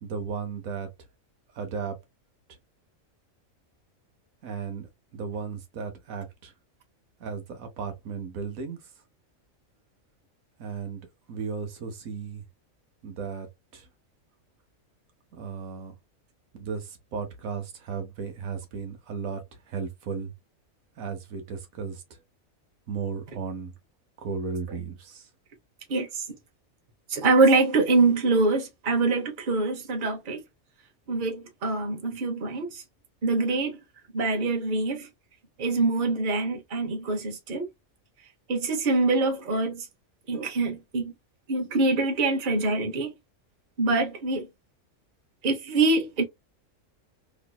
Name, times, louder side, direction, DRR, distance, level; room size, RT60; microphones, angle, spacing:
voice 1, 0.0-0.9 1.6-2.0 4.4-4.9 5.1-6.5 7.2-8.8 10.6-11.0 11.3-12.4 13.0-13.5 13.7-13.8 15.3-15.9 16.5-19.4 19.7-20.3 21.0-22.0 22.9-23.7 24.2-25.2, right 5 dB, 85° right, 1.2 m, -35 dB
voice 2, 25.9-26.2 27.1-30.4 31.1-32.8 33.2-33.8 34.1-35.1 35.6-37.7 38.5-39.9 40.3-41.1 41.5-43.2 43.8-44.5 45.4-46.2, right 3 dB, 40° right, 1.0 m, -24 dB
3.1 x 2.9 x 2.2 m
omnidirectional pair, 1.4 m